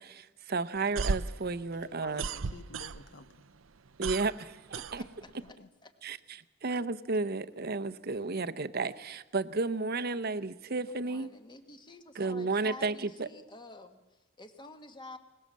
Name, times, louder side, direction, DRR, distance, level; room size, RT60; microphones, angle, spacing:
voice 1, 0.0-2.3 4.0-5.0 6.0-11.3 12.1-13.3, right 3 dB, 50° right, 12 dB, 0.8 m, -33 dB
sound 1, 0.7-3.3 3.6-5.5, right 4 dB, 90° right, 0.7 m, -35 dB
voice 2, 1.7-3.4 5.3-5.7, left 3 dB, 60° left, 12 dB, 0.9 m, -51 dB
voice 3, 4.7-5.9 10.8-15.2, left 2 dB, 25° left, 8 dB, 1.6 m, -50 dB
22.0 x 20.0 x 7.5 m, 1.0 s
head